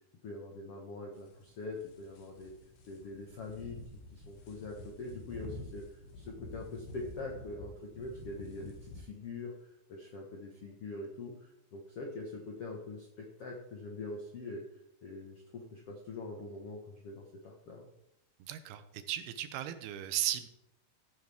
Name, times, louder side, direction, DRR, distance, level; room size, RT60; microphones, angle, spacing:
voice 1, 0.2-2.5 2.9-3.8 4.1-14.6 15.0-17.9, left 3 dB, 55° left, -1 dB, 1.8 m, -44 dB
sound 1, 1.1-9.0, left 1 dB, 75° left, 3.5 m, -49 dB
voice 2, 18.4-20.5, right 12 dB, 90° right, 10 dB, 2.9 m, -36 dB
14.0 x 9.4 x 3.6 m, 0.80 s
omnidirectional pair, 4.4 m